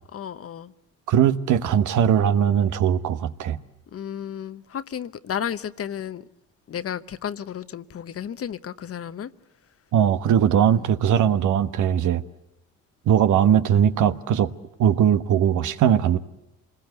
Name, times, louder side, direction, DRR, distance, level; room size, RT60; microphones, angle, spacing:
voice 1, 0.1-0.7 3.9-6.2 6.7-9.3 10.4-10.9, left 9 dB, 50° left, 14 dB, 1.0 m, -33 dB
voice 2, 1.1-3.6 9.9-12.2 13.1-14.5 14.8-16.2, right 9 dB, 75° right, 11 dB, 1.3 m, -20 dB
26.0 x 20.5 x 8.0 m, 0.92 s
cardioid pair, 90°, 30 cm